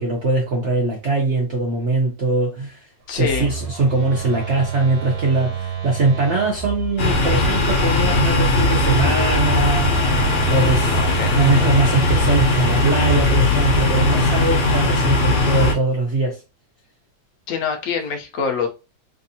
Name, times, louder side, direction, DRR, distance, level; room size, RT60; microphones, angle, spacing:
voice 1, 0.0-2.8 3.1-9.9 10.5-11.0 11.3-16.4, right 3 dB, 50° right, 1.0 m, -21 dB
voice 2, 3.1-3.5 10.9-11.4 17.5-18.7, left 6 dB, 60° left, 1.1 m, -25 dB
Telephone, 3.1-7.2 8.3-14.0, right 4 dB, 70° right, 1.3 m, -27 dB
sound 1, 7.0-15.7, left 2 dB, 80° left, 1.5 m, -19 dB
3.5 x 2.5 x 2.7 m
omnidirectional pair, 1.9 m